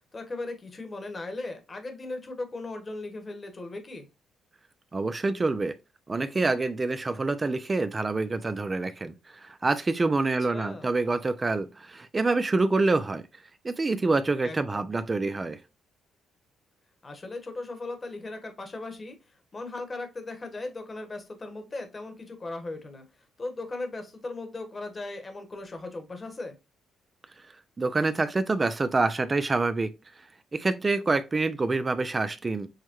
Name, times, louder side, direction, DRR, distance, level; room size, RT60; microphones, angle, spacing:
voice 1, 0.1-4.1 10.5-10.9 14.4-14.9 17.0-26.6, left 2 dB, 30° left, 1.1 m, -38 dB
voice 2, 4.9-5.7 6.1-13.2 13.6-15.6 27.8-29.9 30.5-32.7, right 3 dB, 25° right, 0.4 m, -26 dB
6.3 x 2.1 x 2.9 m
cardioid pair, 90°, 0 cm